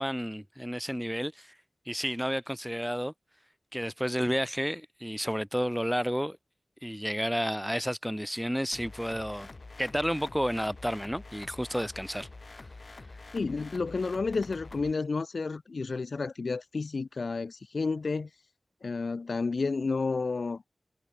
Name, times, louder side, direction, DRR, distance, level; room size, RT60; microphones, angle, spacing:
voice 1, 0.0-1.5 1.9-3.1 3.7-6.4 6.8-9.5 9.8-12.3, equal, ahead, 3.5 m, -31 dB
sound 1, 8.7-14.9, left 3 dB, 50° left, 4.6 m, -47 dB
voice 2, 13.3-18.3 18.8-20.7, left 4 dB, 75° left, 0.8 m, -31 dB
wide cardioid pair, 80°, 0 cm